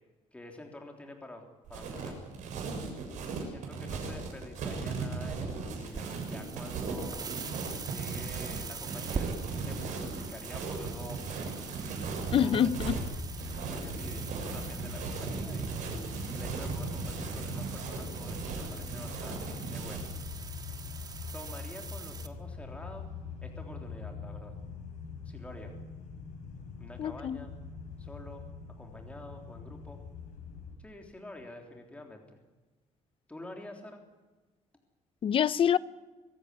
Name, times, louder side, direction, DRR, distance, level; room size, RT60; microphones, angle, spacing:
voice 1, 0.3-2.1 3.2-7.3 7.8-9.3 9.6-11.2 11.6-13.0 13.7-15.8 16.3-20.1 21.3-23.1 23.4-24.5 25.2-25.7 26.8-27.5 28.0-28.4 28.8-30.0 30.8-32.4 33.3-34.0, left 1 dB, 10° left, 3.3 m, -48 dB
sound 1, 1.7-20.1, right 4 dB, 90° right, 6.9 m, -37 dB
sound 2, 5.9-22.3, right 5 dB, 30° right, 1.7 m, -44 dB
voice 2, 12.3-13.0 27.0-27.4 35.2-35.8, left 9 dB, 45° left, 0.8 m, -26 dB
sound 3, 12.9-30.8, left 4 dB, 80° left, 6.0 m, -44 dB
24.5 x 15.5 x 9.6 m
cardioid pair, 155°, 12 cm